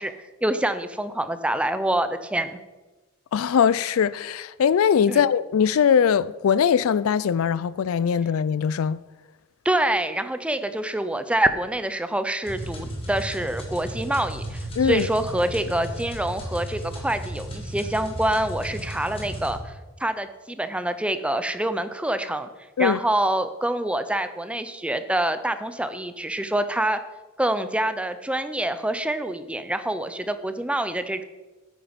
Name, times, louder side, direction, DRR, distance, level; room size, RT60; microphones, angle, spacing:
voice 1, 0.0-2.6 5.1-5.2 9.6-19.7 20.0-22.5 22.8-27.0 27.4-31.2, right 1 dB, 5° right, 0.5 m, -26 dB
voice 2, 3.3-9.0 14.8-15.1 22.8-23.0, left 7 dB, 75° left, 0.4 m, -21 dB
sound 1, 12.4-19.6, right 1 dB, 25° left, 2.7 m, -34 dB
9.1 x 8.9 x 5.2 m
head